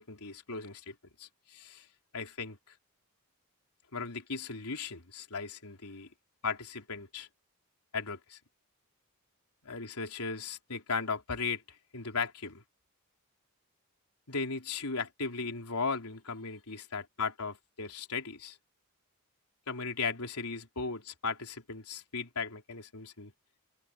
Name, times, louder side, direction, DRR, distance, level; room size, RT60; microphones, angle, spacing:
voice 1, 0.0-1.9 2.1-2.7 3.9-6.1 6.4-7.3 7.9-8.4 9.6-12.6 14.3-18.6 19.7-23.3, left 4 dB, 85° left, 3.6 m, -37 dB
open air
head